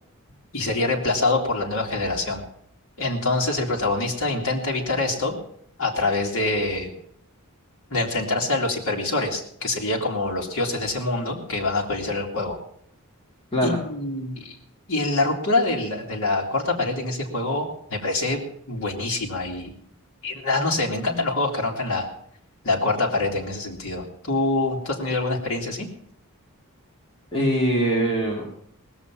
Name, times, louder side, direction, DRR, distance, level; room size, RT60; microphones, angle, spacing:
voice 1, 0.5-2.4 3.0-5.4 5.8-6.9 7.9-12.6 13.6-14.6 14.9-18.4 18.7-19.7 20.2-22.1 22.6-25.9, left 2 dB, 60° left, -2 dB, 2.4 m, -25 dB
voice 2, 27.3-28.6, right 1 dB, 25° left, -3 dB, 2.2 m, -22 dB
19.5 x 7.1 x 7.4 m, 0.68 s
head